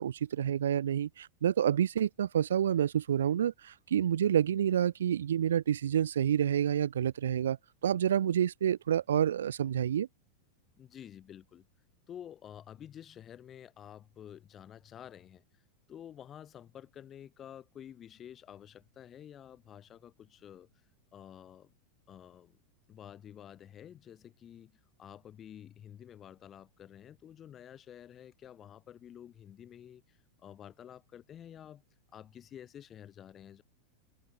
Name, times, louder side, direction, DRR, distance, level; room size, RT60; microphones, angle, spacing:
voice 1, 0.0-7.6 7.8-10.1, right 9 dB, 65° right, 0.4 m, -28 dB
voice 2, 10.8-11.7 12.1-15.4 15.9-20.7 21.1-21.7 22.1-22.6 22.9-31.8 32.1-33.6, left 10 dB, 25° left, 6.5 m, -50 dB
figure-of-eight pair, 90°, 0 cm